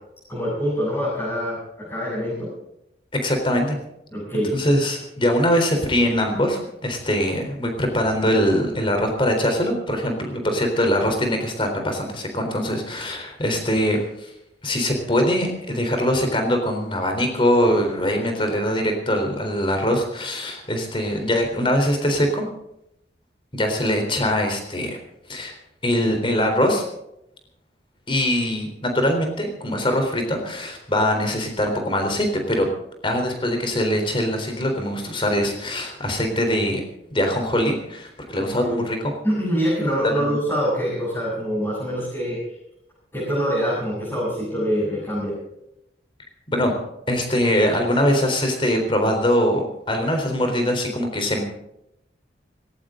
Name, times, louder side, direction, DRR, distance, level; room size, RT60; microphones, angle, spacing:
voice 1, 0.3-2.5 4.1-4.5 38.3-38.8 39.2-42.4 43.1-45.4, equal, 15° left, -9 dB, 7.7 m, -25 dB
voice 2, 3.2-3.8 4.5-14.3 14.6-22.5 23.5-25.0 25.3-25.5 25.8-26.8 28.1-32.7 33.0-36.8 37.1-39.2 40.0-40.4 46.5-46.7 47.1-51.4, equal, 30° left, 4 dB, 3.9 m, -22 dB
19.0 x 17.0 x 3.9 m, 0.81 s
head